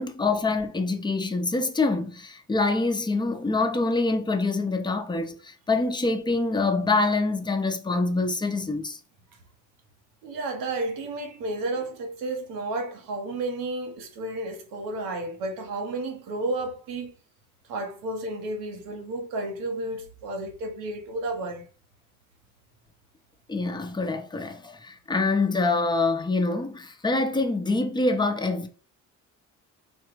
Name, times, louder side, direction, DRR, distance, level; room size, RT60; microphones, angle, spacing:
voice 1, 0.0-9.0 23.5-28.7, left 3 dB, 15° left, 0.8 m, -25 dB
voice 2, 10.2-17.1 17.7-21.7, right 2 dB, 85° right, 1.2 m, -32 dB
4.5 x 2.3 x 4.6 m
cardioid pair, 90°, 33 cm